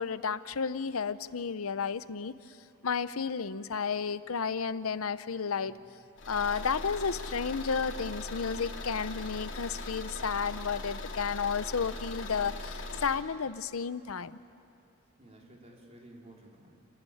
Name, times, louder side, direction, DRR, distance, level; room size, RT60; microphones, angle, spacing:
voice 1, 0.0-2.3 2.8-5.8 6.3-14.4, left 6 dB, 90° left, 15 dB, 0.7 m, -32 dB
Car / Engine, 6.2-13.2, left 2 dB, 60° left, 3.1 m, -40 dB
voice 2, 15.2-16.9, right 1 dB, 30° right, -1 dB, 3.6 m, -54 dB
29.5 x 17.5 x 10.0 m, 2.8 s
head